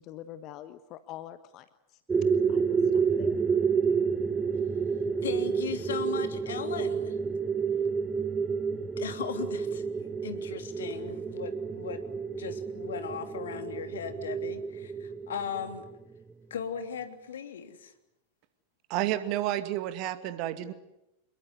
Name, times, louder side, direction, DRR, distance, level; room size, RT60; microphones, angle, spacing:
voice 1, 0.0-2.0 2.5-3.4, left 12 dB, 40° left, 12 dB, 1.3 m, -45 dB
sound 1, 2.1-16.3, right 6 dB, 15° right, 1.0 m, -30 dB
voice 2, 5.2-7.2 9.0-9.8 10.2-12.0 12.4-15.9 16.5-17.9, left 7 dB, 65° left, 8 dB, 3.1 m, -37 dB
voice 3, 18.9-20.7, right 13 dB, 40° right, 11 dB, 2.3 m, -30 dB
27.5 x 22.0 x 9.7 m, 0.88 s
figure-of-eight pair, 90°, 0 cm